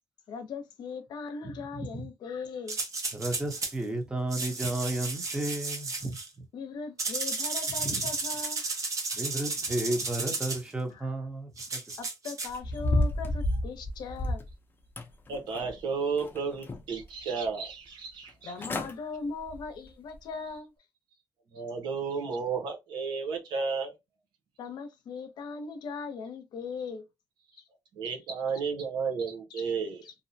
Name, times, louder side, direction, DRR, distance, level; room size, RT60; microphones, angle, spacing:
voice 1, 0.3-2.8 6.5-8.8 10.9-11.1 12.0-14.4 18.4-20.7 24.6-27.1 28.0-28.1 29.5-29.7 30.0-30.1, left 4 dB, 75° left, 0.7 m, -39 dB
voice 2, 1.4-2.0 3.1-6.2 7.8-8.1 9.1-12.0, right 1 dB, 10° right, 0.9 m, -33 dB
sound 1, 2.7-3.7 4.3-6.3 7.0-10.6 11.6-12.5, right 3 dB, 45° right, 0.8 m, -33 dB
sound 2, 12.5-14.5 15.0-15.8 16.2-17.0 17.5-17.6 18.3-18.4 18.6-18.9 19.4-19.7 20.1-20.2, left 1 dB, 30° left, 0.6 m, -31 dB
voice 3, 15.3-18.5 21.5-23.9 27.9-30.0, right 5 dB, 90° right, 0.8 m, -32 dB
2.6 x 2.1 x 2.7 m
cardioid pair, 90°, 7 cm